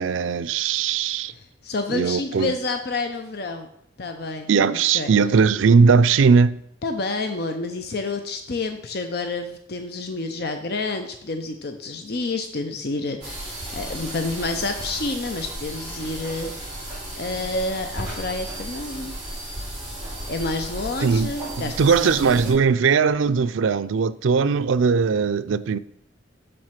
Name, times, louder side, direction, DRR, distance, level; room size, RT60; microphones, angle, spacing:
voice 1, 0.0-1.3 1.9-2.5 4.5-6.6 21.0-21.3 21.8-25.8, right 5 dB, 90° right, 0.4 m, -19 dB
voice 2, 1.3-3.7 4.0-5.1 6.8-16.5 17.2-19.2 20.3-22.6, left 3 dB, 55° left, 0.6 m, -29 dB
sound 1, 13.2-22.5, right 1 dB, 5° right, 4.4 m, -34 dB
7.6 x 6.5 x 5.8 m
head